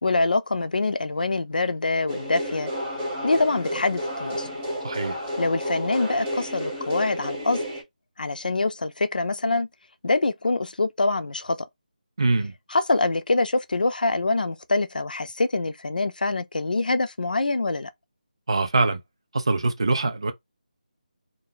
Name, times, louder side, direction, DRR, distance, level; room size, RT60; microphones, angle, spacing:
voice 1, 0.0-2.7 3.2-4.5 5.4-7.6 8.2-9.7 10.0-11.7 12.7-17.9, left 3 dB, 80° left, 0.5 m, -25 dB
sound 1, 2.1-7.8, equal, 10° right, 0.8 m, -31 dB
voice 2, 4.8-5.2 12.2-12.5 18.5-19.0 19.3-20.3, right 3 dB, 35° right, 0.5 m, -23 dB
2.6 x 2.2 x 3.6 m
figure-of-eight pair, 180°, 5 cm